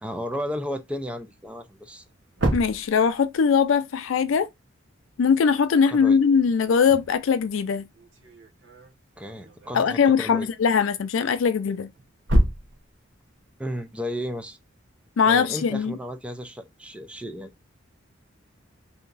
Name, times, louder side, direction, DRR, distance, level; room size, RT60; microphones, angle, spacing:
voice 1, 0.0-2.0 5.9-6.2 9.2-10.5 13.6-14.6 15.2-17.5, equal, 5° right, 0.5 m, -33 dB
sound 1, 1.4-1.5 1.9-3.6 6.5-10.1 11.2-13.5, equal, 65° right, 1.0 m, -29 dB
voice 2, 2.5-4.5 5.2-7.9 9.7-11.9 15.2-16.0, left 6 dB, 80° left, 0.4 m, -21 dB
3.4 x 2.8 x 3.9 m
head